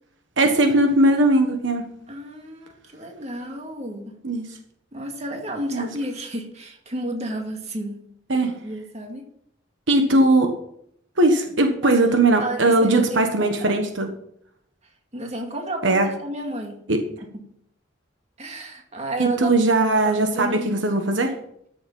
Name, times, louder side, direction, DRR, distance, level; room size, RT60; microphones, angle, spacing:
voice 1, 0.4-1.9 4.2-4.5 5.7-5.9 8.3-8.5 9.9-10.5 11.2-14.1 15.8-16.1 16.9-17.0 19.2-21.3, right 2 dB, 75° right, 5 dB, 1.4 m, -19 dB
voice 2, 2.1-4.2 4.9-8.1 8.4-9.3 11.8-12.0 12.4-13.8 15.1-16.8 17.2-17.5 18.4-19.5 20.0-20.7, right 1 dB, 35° right, 2 dB, 2.1 m, -32 dB
13.5 x 7.0 x 5.5 m, 0.71 s
head